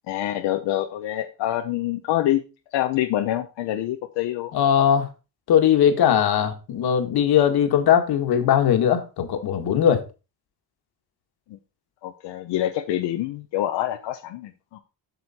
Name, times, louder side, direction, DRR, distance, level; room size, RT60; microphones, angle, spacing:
voice 1, 0.1-2.4 2.7-4.5 11.5-11.6 12.0-14.8, left 13 dB, 90° left, 0.9 m, -26 dB
voice 2, 4.5-5.1 5.5-10.1, left 9 dB, 65° left, 1.7 m, -19 dB
8.2 x 6.4 x 4.2 m
cardioid pair, 150°, 41 cm